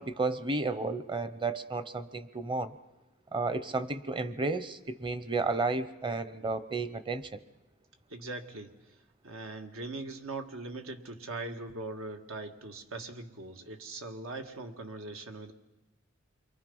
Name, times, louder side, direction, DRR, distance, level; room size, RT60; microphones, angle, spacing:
voice 1, 0.0-2.8 3.3-7.3, right 3 dB, 25° right, 13 dB, 0.8 m, -32 dB
voice 2, 8.1-8.7 9.2-15.5, right 2 dB, 85° right, 5 dB, 1.8 m, -41 dB
29.0 x 23.0 x 5.5 m, 1.0 s
head